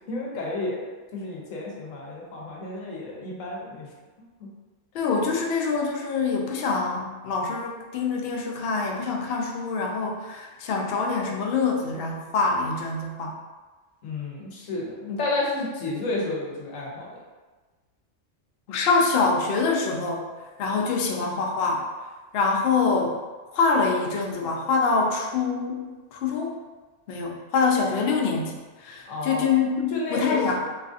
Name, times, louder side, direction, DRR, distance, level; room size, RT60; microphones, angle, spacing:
voice 1, 0.0-3.9 4.4-4.5 14.0-17.2 29.1-29.5 29.9-30.5, left 2 dB, 90° left, -3 dB, 1.1 m, -31 dB
voice 2, 4.9-13.4 18.7-20.3 20.6-21.8 22.3-23.1 23.5-25.8 26.1-26.5 27.1-30.6, left 4 dB, 65° left, 0 dB, 0.6 m, -25 dB
3.1 x 2.5 x 2.4 m, 1.3 s
omnidirectional pair, 1.3 m